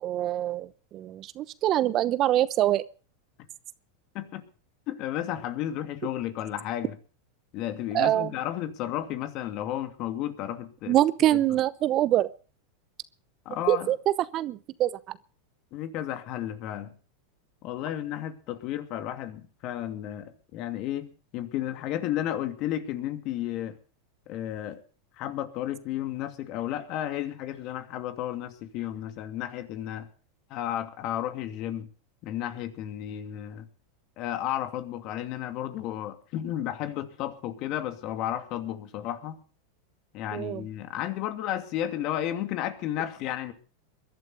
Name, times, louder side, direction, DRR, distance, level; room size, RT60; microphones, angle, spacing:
voice 1, 0.0-2.8 7.9-8.3 10.9-12.3 13.7-14.0 14.3-15.0 40.3-40.6, right 13 dB, 40° right, 0.9 m, -24 dB
voice 2, 4.9-7.0 7.5-11.0 13.5-13.9 15.7-16.9 17.6-23.8 24.3-24.8 25.2-30.1 30.5-31.9 32.2-33.7 34.2-39.4 40.1-43.5, left 12 dB, 50° left, 2.6 m, -33 dB
22.0 x 12.0 x 4.0 m
hypercardioid pair, 100°, 0 cm